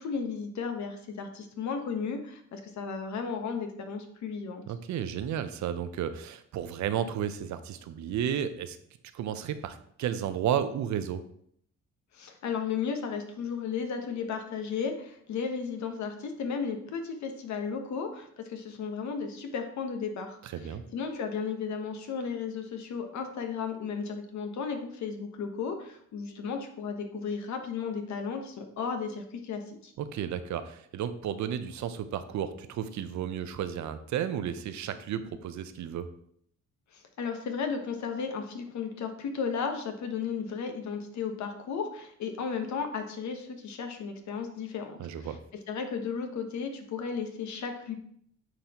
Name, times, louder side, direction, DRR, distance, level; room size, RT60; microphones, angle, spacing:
voice 1, 0.0-4.6 12.1-29.9 36.9-45.3 45.7-48.0, left 6 dB, 65° left, 6 dB, 1.1 m, -34 dB
voice 2, 4.7-8.8 9.1-11.2 20.4-20.8 30.0-36.1 45.0-45.4, right 9 dB, 70° right, 11 dB, 0.6 m, -33 dB
9.0 x 4.0 x 2.9 m, 0.67 s
cardioid pair, 90°, 30 cm